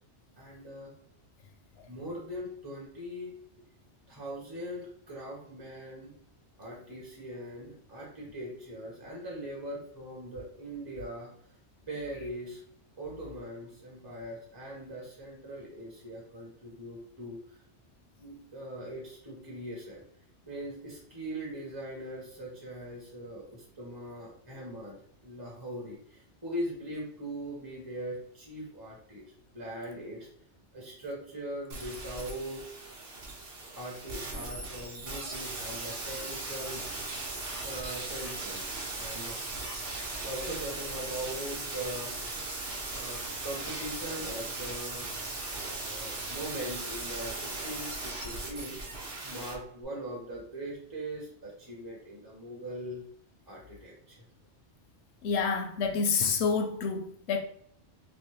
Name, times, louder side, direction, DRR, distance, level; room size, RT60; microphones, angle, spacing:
voice 1, 0.4-0.9 1.9-3.3 4.1-6.1 6.6-11.3 11.9-12.6 13.0-17.4 18.2-20.0 20.5-25.0 25.2-29.2 29.5-30.3 30.7-32.6 33.8-36.8 37.6-39.4 40.2-42.1 42.9-45.1 45.7-48.9 49.2-53.0 53.5-54.2, right 1 dB, 20° right, 0.7 m, -41 dB
sound 1, 31.7-49.5 49.8-49.9, right 2 dB, 60° right, 1.1 m, -38 dB
voice 2, 55.2-57.4, left 5 dB, 70° left, 0.8 m, -28 dB
3.0 x 3.0 x 3.2 m
omnidirectional pair, 1.2 m